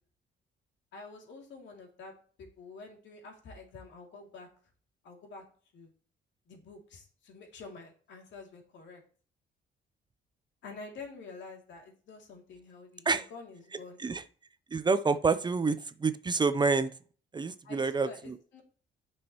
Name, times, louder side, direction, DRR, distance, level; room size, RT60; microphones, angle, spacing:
voice 1, 0.9-2.1 2.4-4.5 5.0-5.4 5.7-5.9 6.5-9.0 10.6-14.0 17.6-18.6, left 3 dB, 75° left, 1 dB, 2.7 m, -48 dB
voice 2, 14.7-16.9 17.3-18.4, right 4 dB, 25° right, 12 dB, 0.5 m, -28 dB
9.2 x 6.1 x 3.0 m, 0.42 s
cardioid pair, 120°, 19 cm